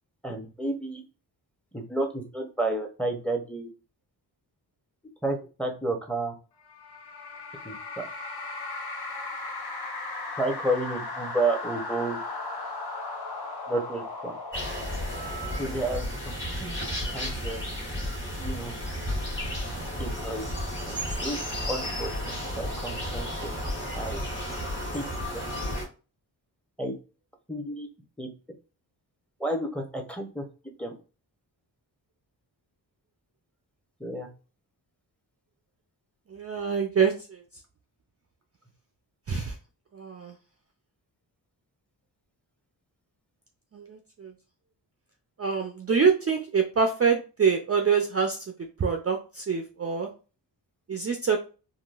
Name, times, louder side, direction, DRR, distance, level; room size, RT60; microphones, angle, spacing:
voice 1, 0.2-1.0 1.7-3.7 5.2-6.3 7.6-8.1 10.4-12.2 13.7-14.3 15.6-16.1 16.6-16.7 17.1-17.6 18.4-18.7 20.0-20.4 20.9-21.4 21.7-23.5 24.0-24.2 24.9-25.0 25.3-25.4 26.8-26.9 27.5-27.9 28.2-28.3 29.4-30.5 30.8-30.9 34.0-34.3, right 2 dB, 5° left, 2 dB, 0.7 m, -31 dB
sound 1, 6.6-16.3, left 3 dB, 60° left, 0.8 m, -37 dB
sound 2, 14.5-25.9, equal, 25° left, 1.4 m, -33 dB
voice 2, 36.3-37.4 39.3-39.5 39.9-40.3 43.7-44.3 45.4-48.4 48.8-50.1 50.9-51.4, right 6 dB, 35° right, 4 dB, 0.4 m, -25 dB
3.7 x 2.3 x 2.4 m, 0.33 s
cardioid pair, 70°, 43 cm